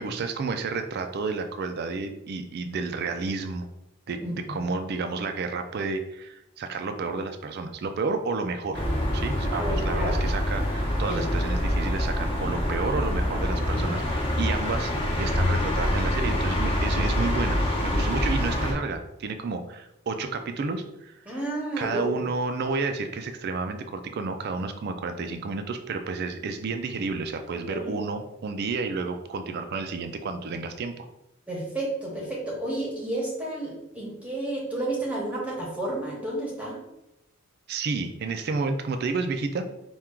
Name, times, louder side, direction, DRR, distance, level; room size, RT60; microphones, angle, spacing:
voice 1, 0.0-3.7 4.1-8.8 9.1-21.3 21.8-31.1 37.7-39.7, right 4 dB, 50° right, 7 dB, 0.3 m, -31 dB
voice 2, 4.2-4.6 9.5-10.1 11.1-11.2 13.8-13.9 21.3-22.1 27.7-27.9 31.5-36.8, right 1 dB, 5° right, -4 dB, 0.9 m, -31 dB
sound 1, 8.7-18.7, left 1 dB, 25° left, 0.7 m, -26 dB
4.3 x 2.3 x 3.6 m, 0.86 s
head